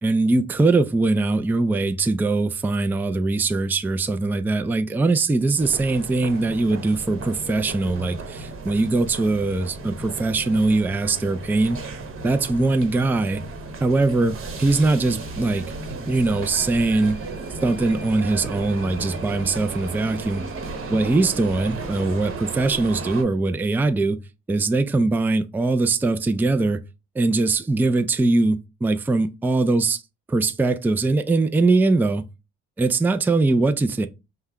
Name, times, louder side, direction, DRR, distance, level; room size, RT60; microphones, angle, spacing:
voice 1, 0.0-11.8 12.2-13.4 13.8-15.6 16.1-17.2 17.6-20.4 20.9-24.2 24.5-26.8 27.2-30.0 30.3-32.2 32.8-34.1, right 3 dB, 5° right, 0.3 m, -21 dB
sound 1, 5.6-23.2, right 3 dB, 45° right, 1.1 m, -34 dB
5.5 x 2.2 x 3.5 m
cardioid pair, 90°, 30 cm